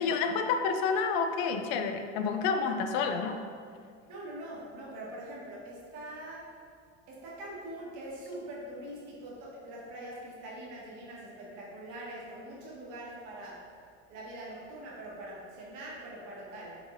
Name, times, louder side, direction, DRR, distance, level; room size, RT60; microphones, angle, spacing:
voice 1, 0.0-3.4, left 5 dB, 75° left, 6 dB, 0.5 m, -29 dB
voice 2, 4.1-6.5 7.1-13.6 14.1-16.8, right 1 dB, 60° right, -6 dB, 1.4 m, -43 dB
4.7 x 3.4 x 2.6 m, 2.2 s
supercardioid pair, 110°, 34 cm